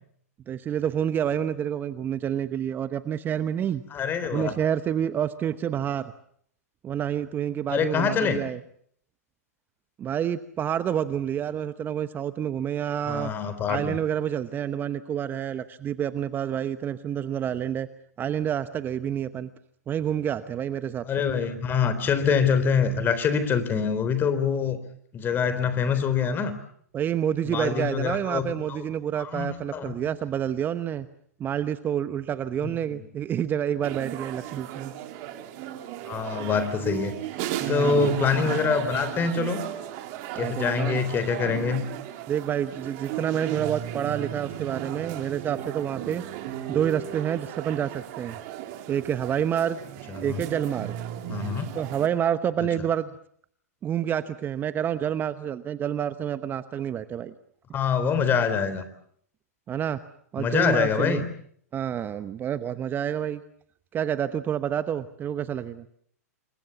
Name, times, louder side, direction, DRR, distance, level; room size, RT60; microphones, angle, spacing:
voice 1, 0.5-3.8 4.3-6.1 6.8-8.6 10.0-13.3 13.7-17.9 18.2-19.5 19.9-21.0 26.9-31.1 31.4-34.9 37.6-38.1 40.4-41.0 42.3-46.2 46.7-48.4 48.9-49.8 50.2-50.9 51.7-53.2 53.8-57.3 59.7-60.0 60.3-61.2 61.7-63.4 63.9-65.9, right 9 dB, 25° right, 13 dB, 1.0 m, -28 dB
voice 2, 3.9-4.5 7.7-8.4 13.1-14.0 21.0-24.8 25.1-26.5 27.4-28.8 29.2-29.9 32.6-33.0 36.0-37.1 37.7-39.6 40.4-41.8 50.1-50.4 51.3-51.7 57.7-58.8 60.4-61.3, left 6 dB, 25° left, 12 dB, 3.7 m, -25 dB
sound 1, 33.8-52.1, right 12 dB, 45° right, 3.0 m, -35 dB
28.0 x 23.5 x 7.0 m, 0.64 s
hypercardioid pair, 110°, 9 cm